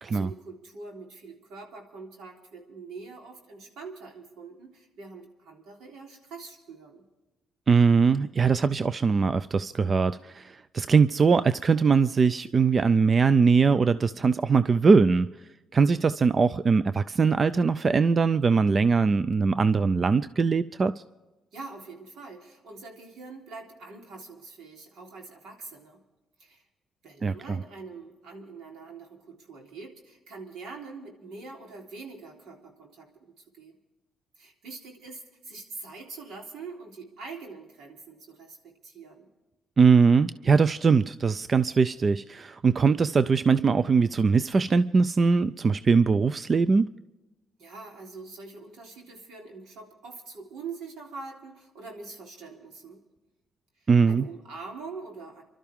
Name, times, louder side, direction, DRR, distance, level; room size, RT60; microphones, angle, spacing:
voice 1, 0.0-7.0 21.5-26.0 26.4-26.6 27.0-33.8 34.4-39.3 47.6-53.0 53.8-55.4, right 4 dB, 80° right, 3.6 m, -44 dB
voice 2, 7.7-15.3 15.7-20.9 27.2-27.6 39.8-46.9 53.9-54.2, right 5 dB, 40° right, 0.4 m, -21 dB
28.0 x 12.5 x 3.6 m
cardioid pair, 90°, 0 cm